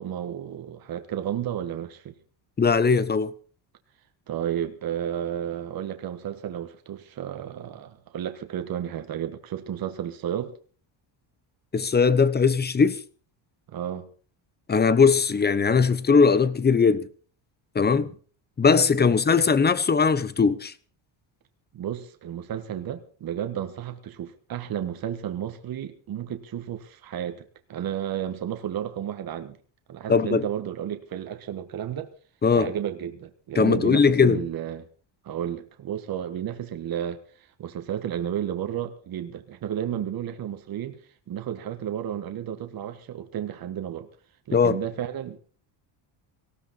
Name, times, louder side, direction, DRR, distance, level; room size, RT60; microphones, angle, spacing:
voice 1, 0.0-2.1 4.3-10.5 13.7-14.1 18.0-18.2 19.0-19.2 21.7-29.6 29.9-32.1 32.5-34.9 35.2-41.0 41.3-44.1 44.5-45.4, right 10 dB, 45° right, 1.6 m, -32 dB
voice 2, 2.6-3.3 11.7-13.0 14.7-17.1 17.7-18.1 18.6-20.7 30.1-30.5 32.4-32.7 33.5-34.4 44.5-44.8, left 5 dB, 20° left, 1.0 m, -20 dB
18.5 x 16.5 x 4.3 m
cardioid pair, 135°, 50 cm